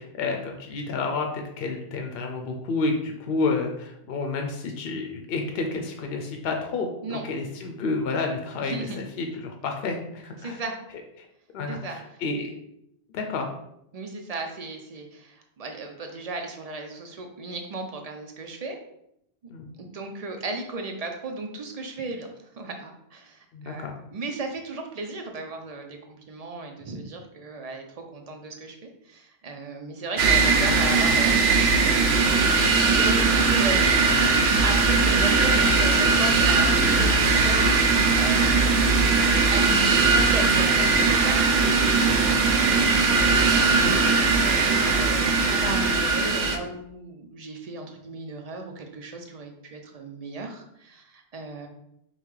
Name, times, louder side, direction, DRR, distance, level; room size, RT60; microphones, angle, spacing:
voice 1, 0.0-10.6 11.2-11.3 11.5-12.5 13.1-13.5 19.5-19.7 23.5-24.0 43.8-44.0, left 3 dB, 70° left, 3 dB, 0.8 m, -30 dB
voice 2, 8.6-9.0 10.4-10.8 11.7-12.0 13.9-18.8 19.8-22.3 22.5-27.8 28.1-31.4 31.8-32.4 32.9-34.0 34.6-42.3 42.6-42.9 43.3-51.7, right 3 dB, 45° right, 4 dB, 0.5 m, -35 dB
sound 1, 30.2-46.6, right 4 dB, 80° right, 0.8 m, -20 dB
5.4 x 2.2 x 3.1 m, 0.77 s
omnidirectional pair, 1.1 m